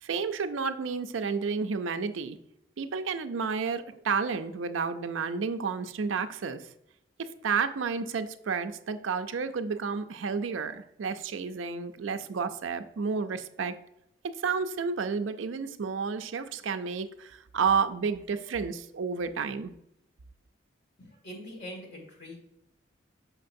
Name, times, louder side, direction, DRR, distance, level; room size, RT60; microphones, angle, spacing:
voice 1, 0.0-2.4 2.8-6.7 7.2-13.8 14.3-19.7, right 5 dB, 80° right, 10 dB, 0.5 m, -31 dB
voice 2, 21.0-22.4, equal, 55° left, 0 dB, 2.0 m, -43 dB
6.5 x 5.9 x 2.6 m, 0.80 s
head